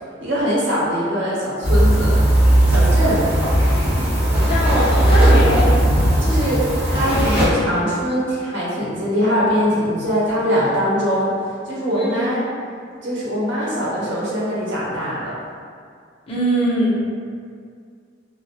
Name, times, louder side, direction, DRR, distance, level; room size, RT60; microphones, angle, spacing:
voice 1, 0.2-2.1 2.7-3.2 6.2-11.3 11.7-12.5 13.0-15.4, equal, 90° right, -8 dB, 0.7 m, -22 dB
sound 1, 1.6-7.5, right 1 dB, 15° right, 1.2 m, -16 dB
voice 2, 4.3-5.7 11.9-12.3 16.3-17.0, equal, 30° left, -8 dB, 0.6 m, -21 dB
2.6 x 2.1 x 2.3 m, 2.2 s
head